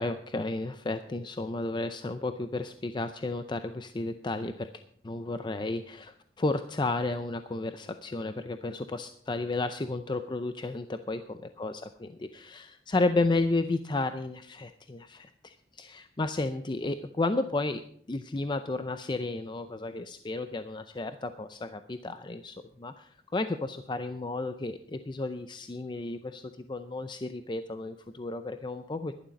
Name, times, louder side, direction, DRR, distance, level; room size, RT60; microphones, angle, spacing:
voice 1, 0.0-4.7 5.0-11.2 11.6-17.8 18.1-29.1, left 2 dB, 25° left, 9 dB, 0.5 m, -32 dB
11.5 x 11.5 x 5.2 m, 0.64 s
head